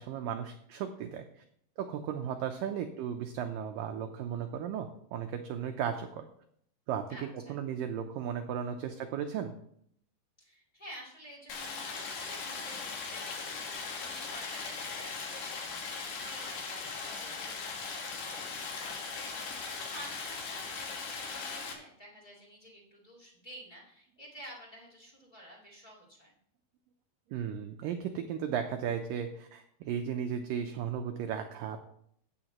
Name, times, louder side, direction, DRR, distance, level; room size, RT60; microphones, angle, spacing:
voice 1, 0.0-1.4 1.8-6.2 6.9-7.0 7.5-9.5 27.3-31.8, right 8 dB, 85° right, 6 dB, 1.9 m, -35 dB
voice 2, 7.1-7.6 10.4-15.5 15.8-19.3 19.6-26.3, equal, 15° left, -4 dB, 2.6 m, -51 dB
Stream, 11.5-21.7, left 4 dB, 60° left, 2.8 m, -39 dB
15.0 x 9.1 x 3.0 m, 0.70 s
omnidirectional pair, 4.7 m